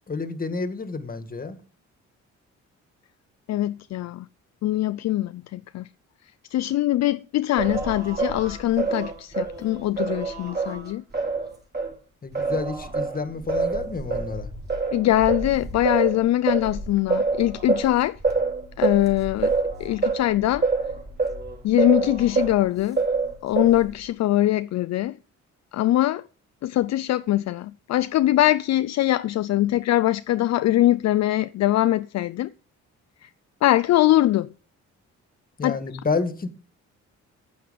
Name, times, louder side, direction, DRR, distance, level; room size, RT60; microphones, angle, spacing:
voice 1, 0.1-1.6 12.2-14.5 35.6-36.5, left 4 dB, 30° left, 1.8 m, -29 dB
voice 2, 3.5-4.3 4.6-5.9 6.5-11.0 14.9-18.2 18.8-19.5 19.8-20.6 21.6-23.0 23.4-25.2 25.7-26.2 26.6-32.5 33.2-33.3 33.6-34.5 35.6-35.8, left 14 dB, 60° left, 0.5 m, -22 dB
Singing, 7.6-11.9 12.3-22.6 23.0-24.0, right 4 dB, 35° right, 4.2 m, -27 dB
9.5 x 9.4 x 5.2 m
cardioid pair, 90°, 30 cm